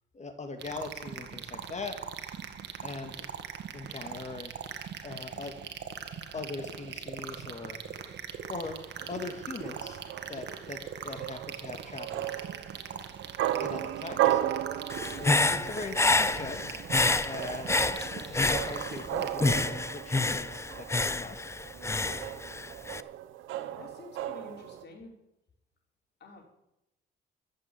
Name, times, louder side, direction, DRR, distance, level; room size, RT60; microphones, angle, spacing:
voice 1, 0.1-2.0 2.8-3.3 3.7-4.5 5.0-5.5 6.3-7.8 8.5-8.8 9.1-10.0 10.3-12.3 13.6-14.4 15.2-16.6 17.2-17.7 18.1-21.4, left 3 dB, 35° left, 7 dB, 2.3 m, -40 dB
sound 1, 0.6-19.3, right 7 dB, 60° right, 1.8 m, -41 dB
sound 2, 8.5-24.8, right 13 dB, 90° right, 1.0 m, -36 dB
Human voice / Breathing, 14.9-19.1 19.4-23.0, left 2 dB, 15° left, 0.6 m, -28 dB
voice 2, 23.7-25.1 26.2-26.5, left 3 dB, 60° left, 0 dB, 5.1 m, -49 dB
14.0 x 8.0 x 8.6 m, 0.85 s
cardioid pair, 90°, 20 cm